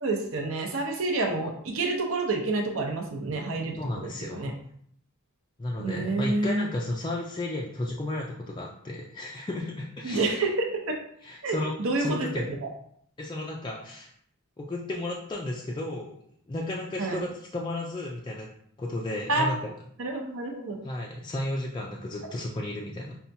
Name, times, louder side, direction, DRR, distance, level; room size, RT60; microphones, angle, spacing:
voice 1, 0.0-4.5 5.8-6.7 10.0-11.0 11.4-12.6 17.0-17.2 19.3-19.7 20.0-20.8, right 2 dB, 65° right, 2 dB, 0.7 m, -28 dB
voice 2, 3.8-4.5 5.6-10.4 11.2-11.7 12.0-12.5 13.2-14.1 14.6-16.2 16.5-18.5 18.8-19.6 20.8-23.2, left 1 dB, 20° left, -2 dB, 0.3 m, -33 dB
5.5 x 2.3 x 2.7 m, 0.64 s
head